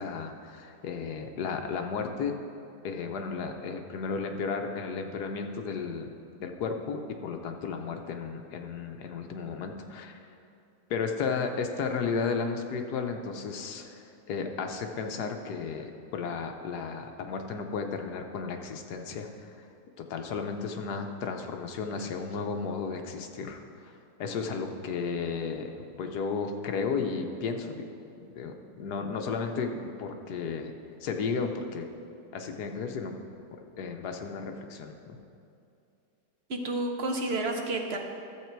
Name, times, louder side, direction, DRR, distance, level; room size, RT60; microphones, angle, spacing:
voice 1, 0.0-2.3 2.8-6.1 6.4-10.2 10.9-19.7 20.1-23.9 24.2-25.7 26.0-27.8 28.3-30.7 31.0-31.9 32.3-33.1 33.8-35.2, left 5 dB, 70° left, 5 dB, 1.3 m, -33 dB
voice 2, 36.5-38.0, right 2 dB, 45° right, 2 dB, 0.9 m, -30 dB
12.5 x 7.4 x 4.5 m, 2.6 s
omnidirectional pair, 1.8 m